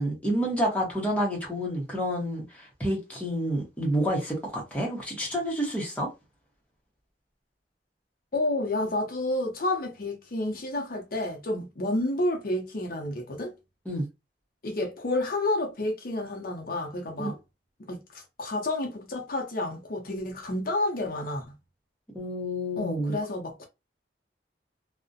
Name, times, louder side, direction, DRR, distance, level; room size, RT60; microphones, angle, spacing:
voice 1, 0.0-6.1 13.9-14.1 17.2-17.3 22.1-23.2, equal, 10° left, 0.7 m, -29 dB
voice 2, 8.3-13.5 14.6-17.4 17.9-21.5 22.8-23.6, left 2 dB, 55° left, 0.6 m, -30 dB
2.4 x 2.0 x 2.5 m
head